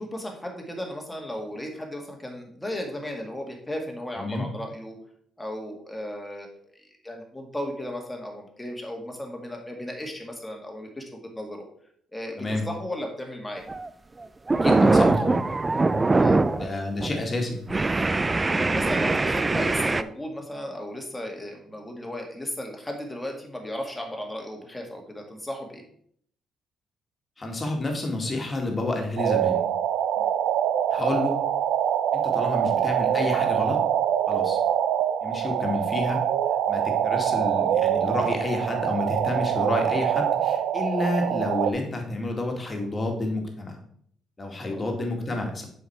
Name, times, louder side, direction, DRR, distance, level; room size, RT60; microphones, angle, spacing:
voice 1, 0.0-5.0 5.4-6.5 7.0-11.7 12.1-13.6 16.2-16.7 18.6-25.8 30.2-30.3 44.7-44.8, left 1 dB, 10° left, 1 dB, 2.0 m, -35 dB
voice 2, 4.2-4.5 12.4-12.6 14.6-15.5 16.6-17.6 27.4-29.6 30.9-31.4 32.1-33.8 34.3-34.6 35.2-36.2 36.7-43.8 44.4-45.6, left 2 dB, 30° left, 2 dB, 2.0 m, -29 dB
sound 1, 13.6-13.9 14.2-16.7 17.0-17.2 17.7-20.0, right 3 dB, 20° right, 0.3 m, -22 dB
sound 2, 29.2-41.7, right 10 dB, 85° right, 0.4 m, -24 dB
7.2 x 5.2 x 4.6 m, 0.63 s
cardioid pair, 90°, 0 cm